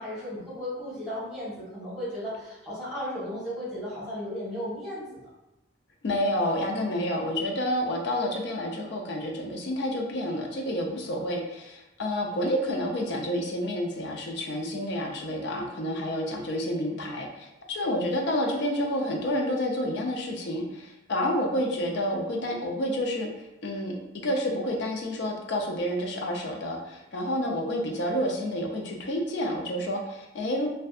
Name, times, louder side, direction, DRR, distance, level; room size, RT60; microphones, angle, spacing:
voice 1, 0.0-5.3, equal, 5° right, -10 dB, 1.0 m, -35 dB
voice 2, 6.0-30.7, equal, 55° left, 1 dB, 0.4 m, -29 dB
2.6 x 2.2 x 2.3 m, 0.95 s
head